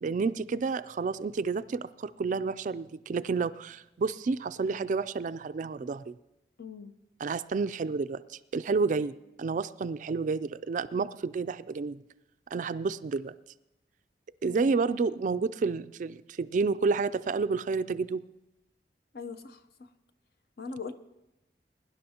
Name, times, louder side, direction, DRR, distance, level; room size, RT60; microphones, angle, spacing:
voice 1, 0.0-6.1 7.2-12.0 12.5-13.4 14.4-18.2, right 4 dB, 45° right, 14 dB, 0.3 m, -30 dB
voice 2, 6.6-7.0 14.5-14.7 19.1-19.6 20.6-20.9, left 5 dB, 60° left, 9 dB, 0.7 m, -40 dB
22.0 x 11.0 x 2.9 m, 0.94 s
head